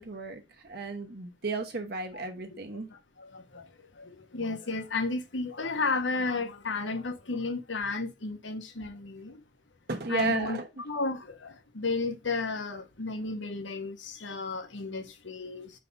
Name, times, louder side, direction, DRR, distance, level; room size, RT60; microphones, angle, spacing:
voice 1, 0.0-2.9 9.9-10.7, right 4 dB, 60° right, 1.0 m, -33 dB
voice 2, 2.1-2.6 2.9-3.7 4.0-9.4 10.1-15.7, left 3 dB, 90° left, 1.1 m, -33 dB
4.8 x 4.6 x 5.3 m
head